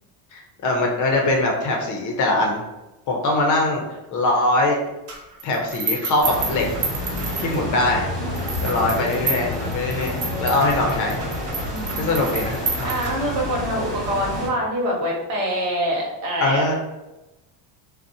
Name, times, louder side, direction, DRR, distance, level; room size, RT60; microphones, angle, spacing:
voice 1, 0.3-2.6 3.1-4.8 5.4-6.6 7.4-8.1 8.6-11.2 12.0-12.9 16.4-16.7, left 2 dB, 40° left, 1 dB, 0.5 m, -22 dB
sound 1, 5.1-7.9 8.4-13.5, right 4 dB, 30° right, 0.5 m, -30 dB
sound 2, 6.2-14.5, equal, ahead, 1.1 m, -29 dB
voice 2, 8.5-9.5 11.6-12.2 12.8-16.7, equal, 80° right, -3 dB, 1.1 m, -26 dB
2.6 x 2.1 x 2.6 m, 0.99 s
cardioid pair, 125°, 50 cm